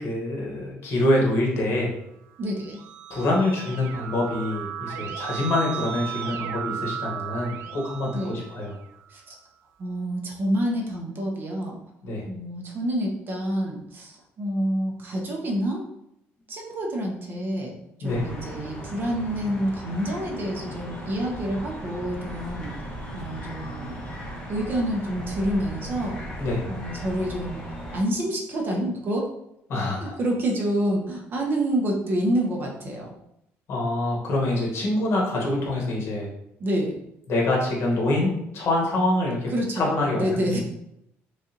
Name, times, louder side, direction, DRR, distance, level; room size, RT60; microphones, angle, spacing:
voice 1, 0.0-1.9 3.1-8.7 12.0-12.2 18.0-18.5 26.4-26.6 29.7-30.1 33.7-36.3 37.3-40.6, left 1 dB, 55° left, -2 dB, 1.2 m, -25 dB
voice 2, 2.4-2.8 8.1-8.4 9.1-9.4 9.8-11.8 12.3-15.9 16.5-22.7 23.1-24.0 24.5-26.2 26.7-27.6 27.9-29.3 30.0-33.1 36.6-37.0 39.5-40.6, right 1 dB, 40° right, 0 dB, 0.8 m, -28 dB
Keyboard (musical), 2.4-9.0, right 9 dB, 85° right, 0.5 m, -35 dB
sound 1, 18.0-28.0, equal, 15° left, 1.0 m, -37 dB
3.7 x 3.3 x 2.8 m, 0.79 s
cardioid pair, 130°, 5 cm